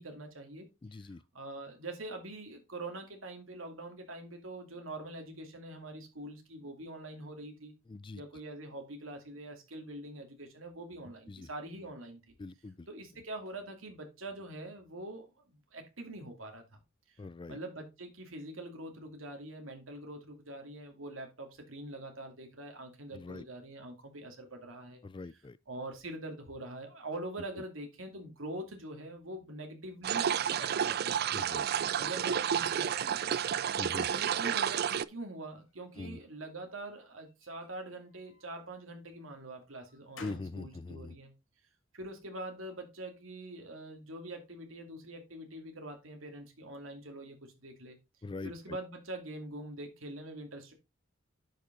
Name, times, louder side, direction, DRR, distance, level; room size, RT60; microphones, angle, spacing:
voice 1, 0.0-0.7 1.0-1.1 1.3-7.7 8.1-12.2 12.9-16.8 17.5-25.0 25.7-31.2 32.0-33.4 34.1-41.3 41.9-48.0 48.4-50.7, right 1 dB, 80° right, 2.7 m, -44 dB
voice 2, 0.8-1.2 7.9-8.2 11.3-11.5 12.4-12.9 17.2-17.6 23.1-23.4 25.0-25.6 31.3-31.7 33.8-34.1 36.0-36.2 40.2-41.2 48.2-48.8, left 3 dB, 25° left, 0.3 m, -42 dB
sound 1, 30.0-35.0, right 8 dB, 50° right, 0.4 m, -31 dB
sound 2, 33.1-35.1 35.5-36.3 37.3-38.7 39.3-40.6, left 4 dB, 75° left, 2.3 m, -56 dB
10.5 x 5.4 x 3.8 m
head